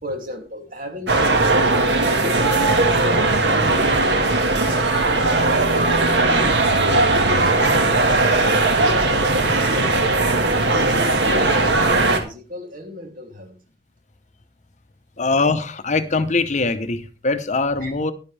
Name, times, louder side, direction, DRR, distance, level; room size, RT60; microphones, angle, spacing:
voice 1, 0.0-2.4 3.0-3.4 3.8-4.3 5.2-8.3 8.8-10.1 10.7-13.6 17.8-17.9, left 1 dB, 50° right, 2.9 m, -34 dB
sound 1, 1.1-12.2, right 2 dB, 75° right, 1.9 m, -18 dB
voice 2, 15.2-18.1, left 3 dB, 40° left, 0.9 m, -22 dB
12.5 x 11.0 x 3.4 m
head